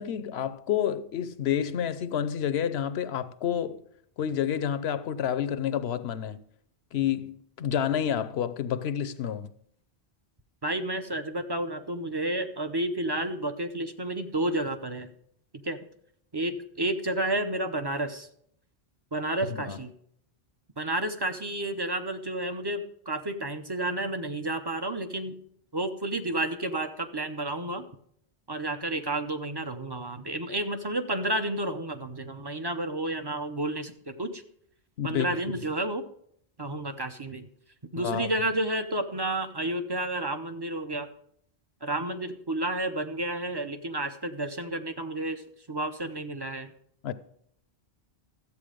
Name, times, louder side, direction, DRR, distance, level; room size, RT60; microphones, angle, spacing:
voice 1, 0.0-3.8 4.2-6.4 6.9-9.5 19.5-19.8 35.0-35.3 38.0-38.3 47.0-47.1, left 9 dB, 75° left, 0.9 m, -29 dB
voice 2, 10.6-15.1 15.6-15.8 16.3-18.3 19.1-19.9 20.8-25.4 25.7-27.8 28.5-34.4 35.0-36.0 36.6-37.5 37.9-41.1 41.8-45.4 45.7-46.7, right 1 dB, 25° right, 0.7 m, -31 dB
13.0 x 8.2 x 5.0 m
omnidirectional pair, 1.1 m